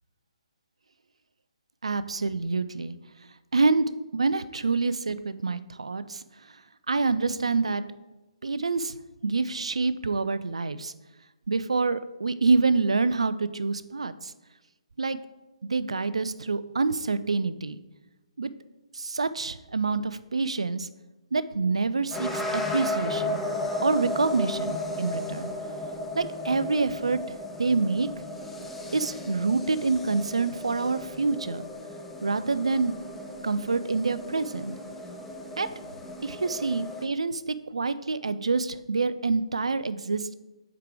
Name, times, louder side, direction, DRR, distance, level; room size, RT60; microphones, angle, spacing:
voice 1, 1.8-2.9 3.5-3.9 4.1-6.2 6.9-7.9 8.4-9.0 9.2-10.9 11.5-14.3 15.0-15.2 15.6-17.8 18.4-18.5 18.9-20.9 21.3-23.4 23.8-25.5 26.1-27.2 27.6-28.1 28.9-31.6 32.2-32.9 33.4-34.7 35.6-35.7 36.2-40.3, right 4 dB, 70° right, 14 dB, 0.4 m, -27 dB
sound 1, 22.1-37.1, left 1 dB, 5° left, 0.5 m, -35 dB
5.7 x 4.7 x 4.8 m, 1.1 s
figure-of-eight pair, 135°, 3 cm